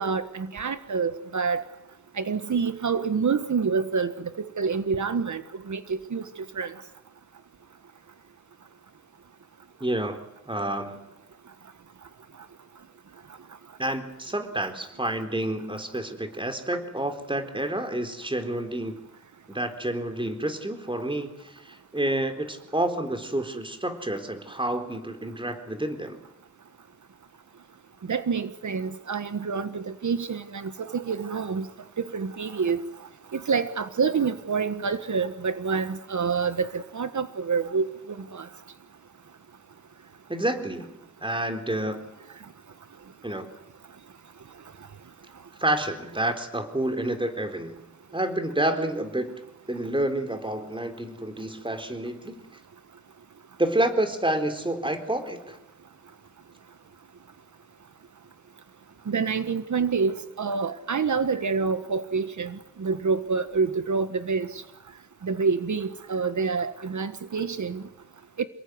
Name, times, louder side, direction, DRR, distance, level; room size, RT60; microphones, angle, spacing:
voice 1, 0.0-1.6 2.2-4.1 4.6-6.2 6.5-6.7 28.1-31.7 32.0-32.8 33.3-38.5 59.1-64.5 65.2-67.8 68.4-68.5, right 5 dB, 75° right, 10 dB, 1.5 m, -27 dB
voice 2, 9.8-11.0 13.8-19.0 19.5-26.2 40.3-40.9 41.2-42.0 43.2-43.5 45.6-47.8 48.1-49.3 49.7-52.4 53.6-55.6, right 1 dB, 15° right, 7 dB, 4.1 m, -29 dB
28.5 x 20.0 x 9.7 m, 0.84 s
wide cardioid pair, 85°, 30 cm